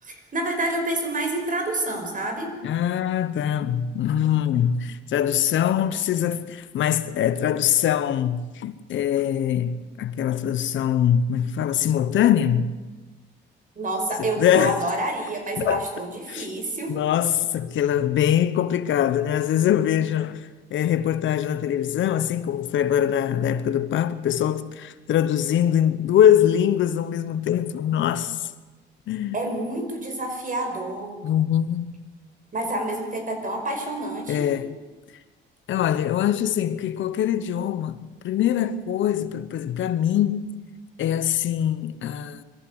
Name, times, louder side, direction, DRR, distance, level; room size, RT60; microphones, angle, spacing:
voice 1, 0.0-2.5 13.8-17.0 29.3-31.2 32.5-34.5, right 1 dB, 40° right, 5.3 m, -28 dB
voice 2, 2.6-12.7 14.2-14.8 15.6-15.8 16.3-16.5 16.9-28.5 29.1-29.4 31.2-31.9 34.3-34.8 35.7-38.0 38.2-40.6 41.0-42.4, left 10 dB, 75° left, 1.1 m, -23 dB
22.0 x 14.5 x 8.2 m
cardioid pair, 90°, 20 cm